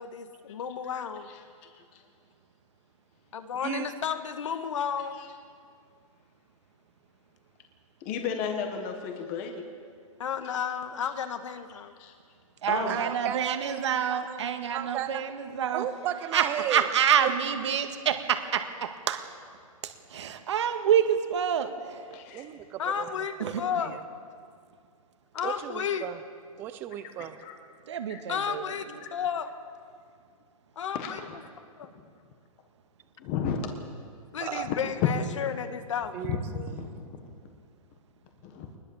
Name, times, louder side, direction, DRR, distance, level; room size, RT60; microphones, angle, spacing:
voice 1, 0.0-1.3 3.3-5.2 10.2-11.9 22.8-24.0 25.3-26.1 28.3-29.5 30.7-31.2 31.8-31.9 34.3-36.2, left 7 dB, 60° left, 9 dB, 1.7 m, -32 dB
voice 2, 3.6-3.9 12.9-14.4 14.7-15.2 15.7-16.9 17.2-17.3 22.3-23.1 23.4-23.5 23.9-24.0 25.4-26.2 26.6-27.4 34.4-34.7 36.1-36.9, right 12 dB, 10° right, 11 dB, 0.6 m, -35 dB
voice 3, 8.0-9.7 10.5-10.6 12.0-12.1 12.7-13.0 22.1-22.5 27.4-27.5 28.1-28.2 28.7-28.8 30.9-31.3 33.2-33.7 34.7-34.8 36.2-37.1 38.4-38.7, left 6 dB, 20° left, 4 dB, 1.4 m, -34 dB
voice 4, 12.6-15.9 16.3-19.2 20.1-21.7 23.4-23.6 27.9-28.6, right 8 dB, 55° right, 7 dB, 1.8 m, -27 dB
23.0 x 21.0 x 7.2 m, 2.2 s
hypercardioid pair, 175°, 18 cm